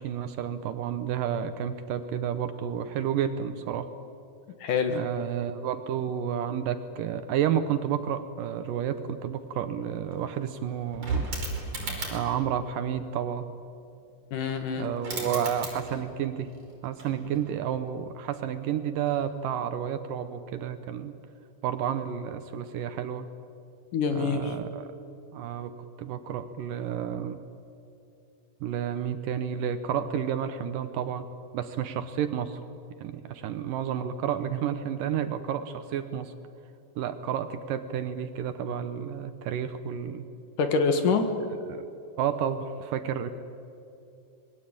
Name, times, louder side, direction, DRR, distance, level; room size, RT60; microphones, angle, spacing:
voice 1, 0.0-3.9 4.9-11.3 12.1-13.5 14.8-16.5 16.8-21.1 21.6-23.3 24.1-24.9 25.3-27.4 28.6-31.3 31.5-32.6 33.0-36.3 37.0-40.3 41.7-41.8 42.2-43.3, right 9 dB, 70° right, 10 dB, 2.3 m, -31 dB
voice 2, 4.6-5.0 14.3-14.9 23.9-24.5 40.6-41.3, left 5 dB, 60° left, 7 dB, 2.9 m, -25 dB
sound 1, 9.6-9.7 9.9-12.4 14.5-14.6 14.8-16.2 16.5-17.6 19.0-19.2, right 3 dB, 40° right, 6.2 m, -36 dB
26.5 x 21.5 x 8.8 m, 2.7 s
omnidirectional pair, 4.4 m